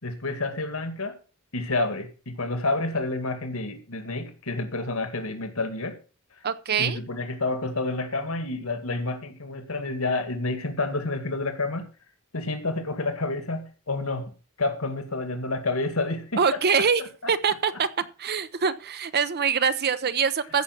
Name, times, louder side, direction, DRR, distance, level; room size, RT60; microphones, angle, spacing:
voice 1, 0.0-1.2 1.5-6.0 6.8-11.9 12.3-14.3 14.6-16.8, left 2 dB, 80° left, 8 dB, 2.1 m, -29 dB
voice 2, 6.4-7.0 16.4-17.0 17.3-17.9 18.2-20.6, right 6 dB, 50° right, 13 dB, 0.7 m, -24 dB
14.5 x 6.0 x 6.0 m, 0.36 s
head